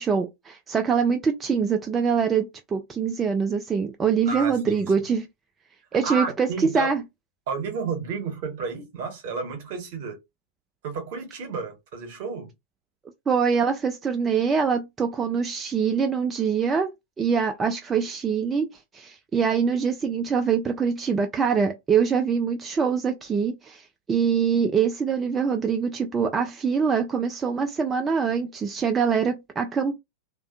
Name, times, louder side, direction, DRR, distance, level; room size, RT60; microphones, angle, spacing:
voice 1, 0.0-5.2 5.9-7.0 13.3-16.9 17.2-18.7 18.9-30.0, right 6 dB, 20° right, 0.4 m, -24 dB
voice 2, 4.3-4.8 6.0-6.9 7.5-10.2 10.8-12.5, right 5 dB, 55° right, 1.0 m, -31 dB
2.5 x 2.2 x 2.5 m
figure-of-eight pair, 90°, 0 cm